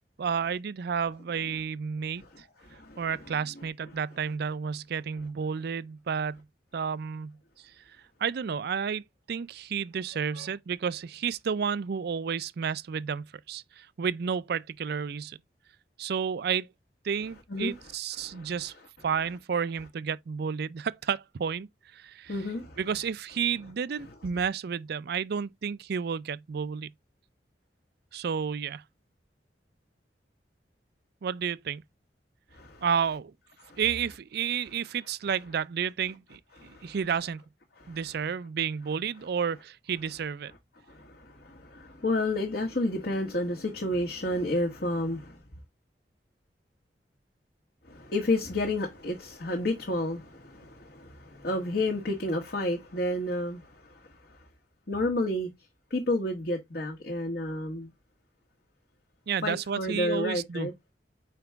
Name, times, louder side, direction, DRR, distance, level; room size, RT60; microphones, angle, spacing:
voice 1, 0.2-2.2 3.0-6.4 6.7-7.4 8.2-9.0 9.3-15.4 16.0-16.7 17.0-18.7 19.0-21.7 21.9-22.4 22.8-26.9 28.1-28.8 31.2-31.8 32.8-33.3 33.8-37.4 37.9-40.5 59.3-60.7, right 7 dB, 60° right, 0.4 m, -31 dB
voice 2, 2.6-3.0 10.3-10.5 17.5-17.7 18.2-18.5 22.3-22.8 32.5-32.8 33.6-33.8 36.6-37.0 37.8-38.0 40.9-45.4 47.9-54.2 54.9-55.5 55.9-57.9 59.4-60.7, left 1 dB, 60° left, 1.4 m, -31 dB
5.8 x 4.7 x 3.4 m
head